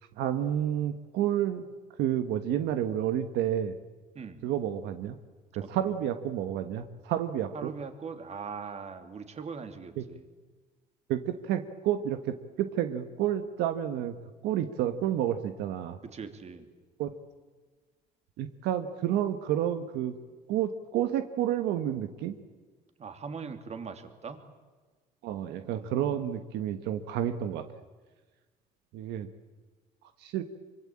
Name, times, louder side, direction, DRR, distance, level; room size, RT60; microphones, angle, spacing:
voice 1, 0.2-1.7 2.0-3.8 4.4-5.2 5.5-7.7 10.0-10.1 11.1-14.2 14.4-16.0 17.0-17.1 18.4-20.2 20.5-22.4 25.2-27.7 28.9-29.3 30.2-30.4, right 10 dB, 85° right, 9 dB, 1.4 m, -30 dB
voice 2, 7.5-10.2 16.1-16.7 23.0-24.4 25.4-26.2, right 5 dB, 40° right, 8 dB, 2.9 m, -41 dB
24.5 x 24.5 x 8.8 m, 1.3 s
cardioid pair, 110°, 17 cm